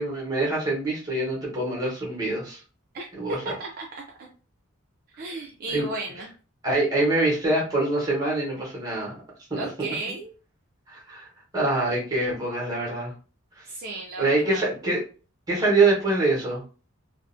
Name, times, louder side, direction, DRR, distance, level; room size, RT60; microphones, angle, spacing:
voice 1, 0.0-2.6 3.2-3.5 5.7-5.8 6.6-9.2 9.5-9.7 10.9-11.3 11.5-13.1 13.6-13.7 14.2-15.0 15.5-16.6, right 2 dB, 15° right, -3 dB, 0.9 m, -24 dB
voice 2, 2.9-4.3 5.2-6.3 9.5-10.3 13.7-14.7, right 2 dB, 45° right, 0 dB, 0.4 m, -35 dB
2.4 x 2.0 x 2.5 m, 0.36 s
head